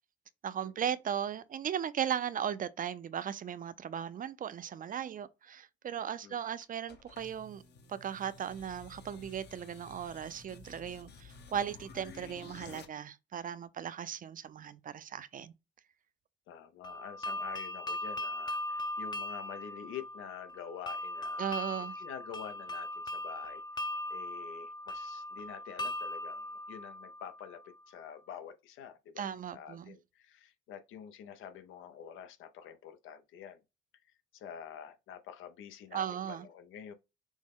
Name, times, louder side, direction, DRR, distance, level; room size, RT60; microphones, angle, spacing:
voice 1, 0.4-7.6 7.9-15.5 21.4-22.0 29.2-30.0 35.9-36.5, right 9 dB, 45° right, 0.4 m, -37 dB
sound 1, 6.6-12.9, left 4 dB, 60° left, 0.9 m, -52 dB
voice 2, 16.5-21.6 22.0-23.6 24.1-33.6 34.3-36.9, left 8 dB, 85° left, 0.7 m, -47 dB
sound 2, 16.8-27.7, left 1 dB, 20° left, 0.5 m, -39 dB
6.2 x 2.1 x 3.6 m
cardioid pair, 90°, 20 cm